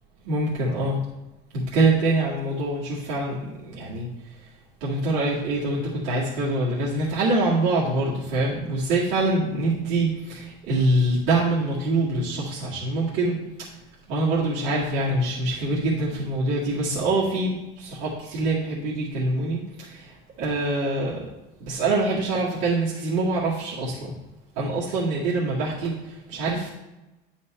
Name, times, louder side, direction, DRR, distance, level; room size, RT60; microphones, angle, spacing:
voice 1, 0.3-1.0 1.5-4.1 4.8-13.4 14.1-20.1 20.4-21.2 21.7-24.2 24.6-26.7, right 2 dB, 65° right, -7 dB, 2.1 m, -25 dB
10.5 x 4.3 x 4.3 m, 1.0 s
cardioid pair, 180°, 21 cm